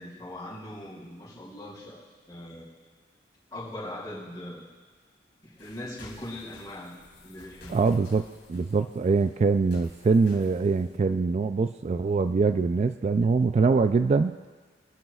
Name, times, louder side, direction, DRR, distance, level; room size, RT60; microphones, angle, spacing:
voice 1, 0.0-2.0 2.3-2.7 3.5-4.7 5.4-6.9 7.2-7.9, left 1 dB, 25° left, -7 dB, 5.1 m, -40 dB
sound 1, 5.6-11.0, left 2 dB, 65° left, 2.8 m, -52 dB
voice 2, 7.7-8.2 8.5-14.3, right 4 dB, 35° right, 10 dB, 0.3 m, -23 dB
24.5 x 13.0 x 2.4 m, 1.4 s
head